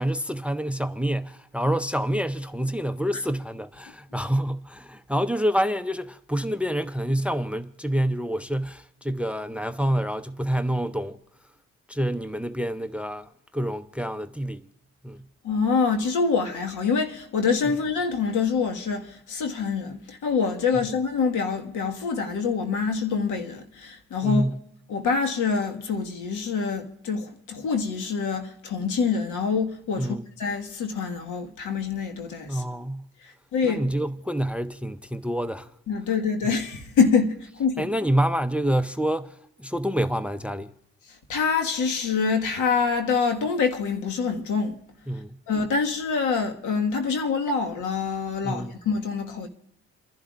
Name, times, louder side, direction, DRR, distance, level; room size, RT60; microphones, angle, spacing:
voice 1, 0.0-11.2 11.9-14.7 15.0-15.2 24.2-24.6 30.0-30.2 32.5-33.0 33.6-35.7 37.8-40.7 45.1-45.4 48.4-48.8, equal, 5° right, 0.5 m, -27 dB
voice 2, 15.4-24.5 24.9-32.6 33.5-33.8 35.9-37.9 41.3-44.8 45.5-49.5, left 5 dB, 80° left, 1.8 m, -25 dB
29.0 x 11.5 x 2.5 m
cardioid pair, 90°, 30 cm